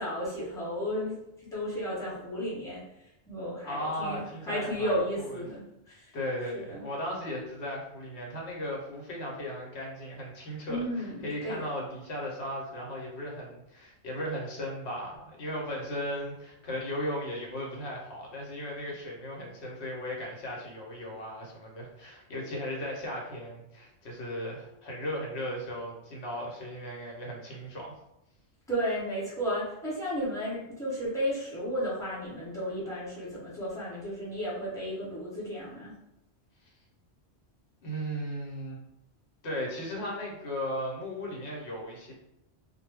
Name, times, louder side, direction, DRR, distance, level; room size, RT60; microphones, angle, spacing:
voice 1, 0.0-6.1 6.5-6.9 10.7-11.7 28.7-36.0, equal, 5° left, -9 dB, 0.8 m, -33 dB
voice 2, 3.6-5.4 5.9-10.8 11.2-27.9 37.8-38.8 39.4-42.1, equal, 65° left, -2 dB, 1.0 m, -36 dB
2.2 x 2.0 x 3.3 m, 0.87 s
omnidirectional pair, 1.2 m